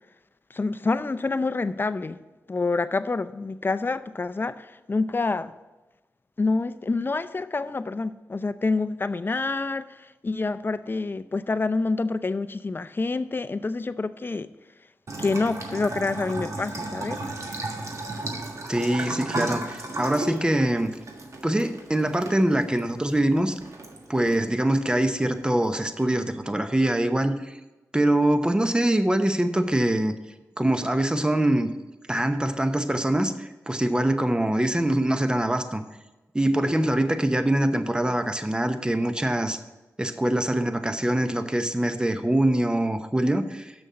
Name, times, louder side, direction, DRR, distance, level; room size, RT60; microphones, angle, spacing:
voice 1, 0.5-2.2 2.5-5.5 6.4-9.9 10.2-14.5 15.2-17.2, left 3 dB, 35° left, 0.5 m, -27 dB
Bathtub (filling or washing) / Trickle dribble, 15.1-26.0, right 2 dB, 55° right, 1.5 m, -35 dB
voice 2, 18.7-20.9 21.4-23.6 24.1-27.6 27.9-30.1 30.6-31.7 32.1-35.8 36.3-39.6 40.0-43.7, right 1 dB, 15° right, 0.9 m, -24 dB
7.0 x 6.3 x 7.5 m
cardioid pair, 50°, 6 cm